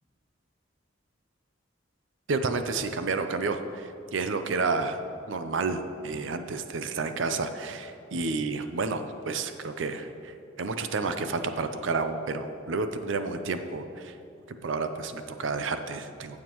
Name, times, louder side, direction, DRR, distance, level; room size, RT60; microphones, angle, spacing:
voice 1, 2.3-5.0 5.3-14.2 14.6-16.4, right 4 dB, 70° right, 8 dB, 0.5 m, -30 dB
15.0 x 7.3 x 3.0 m, 2.7 s
head